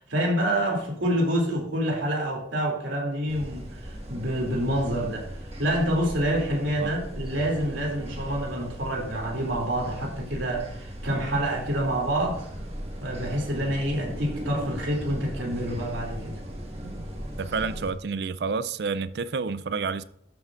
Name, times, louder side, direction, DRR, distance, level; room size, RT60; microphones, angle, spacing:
voice 1, 0.1-12.4 13.0-16.3, right 1 dB, 85° right, 2.8 m, -27 dB
sound 1, 3.3-17.9, equal, 30° right, 1.6 m, -38 dB
voice 2, 16.7-17.0 17.4-20.0, right 5 dB, 60° right, 0.4 m, -30 dB
13.0 x 7.8 x 2.5 m
head